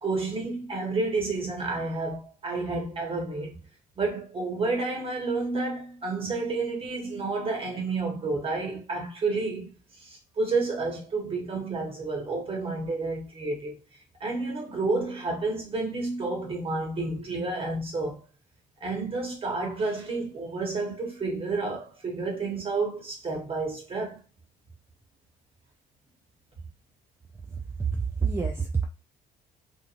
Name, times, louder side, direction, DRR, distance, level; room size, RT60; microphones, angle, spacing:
voice 1, 0.0-3.6 4.0-13.8 14.2-18.2 18.8-24.2, right 3 dB, 35° right, 1.3 m, -30 dB
voice 2, 27.8-28.8, right 5 dB, 15° right, 0.4 m, -27 dB
2.9 x 2.5 x 2.5 m
cardioid pair, 110°, 17 cm